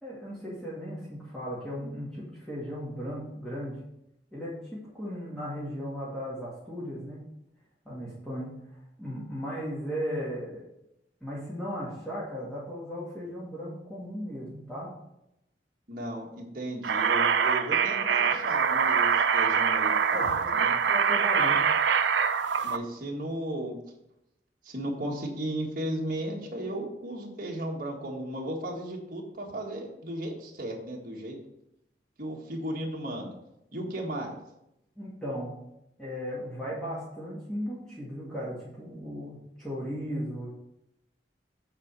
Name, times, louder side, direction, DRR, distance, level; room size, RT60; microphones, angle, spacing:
voice 1, 0.0-3.8 4.3-7.2 7.9-8.6 9.0-10.6 11.2-14.9 20.1-20.5 20.9-21.6 35.0-35.5 36.0-40.5, equal, 5° left, -9 dB, 1.9 m, -36 dB
voice 2, 15.9-20.7 22.6-23.8 24.6-31.4 32.2-33.3 33.7-34.4, right 1 dB, 50° right, -2 dB, 1.7 m, -35 dB
sound 1, 16.8-22.8, right 6 dB, 85° right, 0.5 m, -24 dB
8.8 x 4.1 x 6.8 m, 0.84 s
head